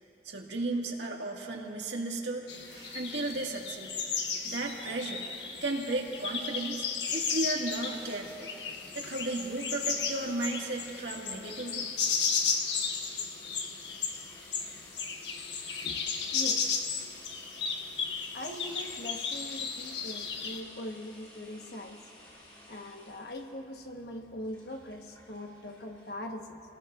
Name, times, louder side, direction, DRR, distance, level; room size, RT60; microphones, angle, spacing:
voice 1, 0.2-3.9 4.4-5.3 5.6-6.9 7.1-8.5 9.0-11.8, right 2 dB, 90° right, -1 dB, 1.9 m, -34 dB
sound 1, 2.5-20.6, left 5 dB, 85° left, 1.2 m, -34 dB
sound 2, 7.8-26.1, left 1 dB, 30° left, 2.9 m, -55 dB
voice 2, 16.3-16.8 18.1-22.1 22.7-26.6, left 1 dB, 65° left, 3 dB, 1.2 m, -42 dB
29.0 x 19.5 x 2.5 m, 2.8 s
head